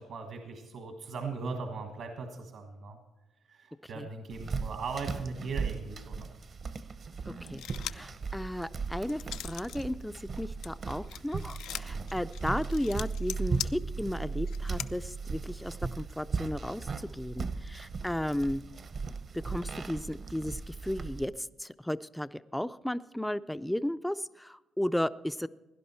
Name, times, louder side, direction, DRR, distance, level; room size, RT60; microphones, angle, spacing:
voice 1, 0.0-3.0 3.5-6.3, right 4 dB, 70° right, 4 dB, 1.5 m, -39 dB
sound 1, 4.3-21.2, right 4 dB, 50° right, 0.8 m, -37 dB
voice 2, 7.3-7.6 7.9-18.6 19.3-25.5, left 1 dB, 5° left, 14 dB, 0.4 m, -34 dB
sound 2, 7.5-8.1 8.6-9.8 10.2-14.9, left 11 dB, 85° left, 0.4 m, -41 dB
17.0 x 11.0 x 4.4 m, 1.1 s
cardioid pair, 90°, 0 cm